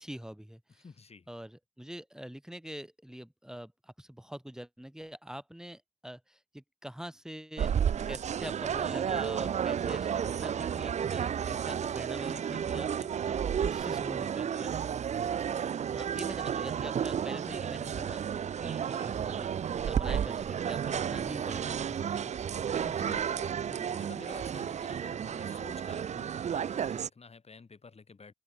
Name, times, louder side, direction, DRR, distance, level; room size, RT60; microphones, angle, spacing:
voice 1, 0.0-0.8 1.3-7.8 8.1-14.8 16.0-18.2 18.6-22.1 23.9-24.0, equal, 5° right, 1.8 m, -44 dB
voice 2, 0.8-1.3 13.7-14.0 14.7-14.9 15.2-15.4 18.8-19.1 22.8-28.3, left 4 dB, 65° left, 4.4 m, -51 dB
sound 1, 7.6-27.1, right 8 dB, 85° right, 0.4 m, -32 dB
open air
cardioid pair, 55°, 12 cm